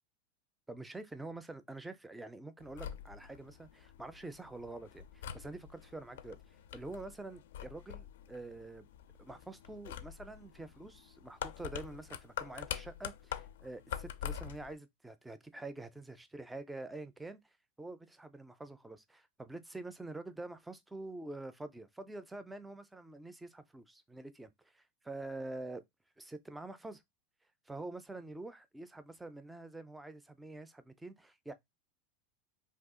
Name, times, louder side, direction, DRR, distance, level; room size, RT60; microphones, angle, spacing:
voice 1, 0.7-8.9 9.2-17.4 17.8-25.8 26.2-27.0 27.7-31.5, right 2 dB, 5° right, 0.4 m, -46 dB
sound 1, 2.6-14.7, left 10 dB, 85° left, 0.4 m, -45 dB
2.7 x 2.3 x 3.6 m
supercardioid pair, 140°, 0 cm